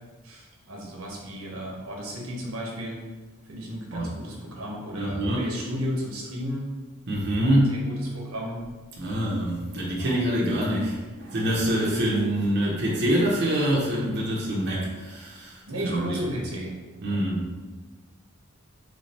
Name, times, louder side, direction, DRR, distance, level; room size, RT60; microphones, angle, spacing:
voice 1, 0.2-3.0 3.5-6.7 7.4-8.6 10.0-10.5 15.7-17.2, equal, 90° right, -2 dB, 1.1 m, -34 dB
voice 2, 5.0-5.5 7.1-7.7 9.0-16.2 17.0-17.5, right 1 dB, 55° right, -4 dB, 0.7 m, -25 dB
3.3 x 3.2 x 4.2 m, 1.3 s
head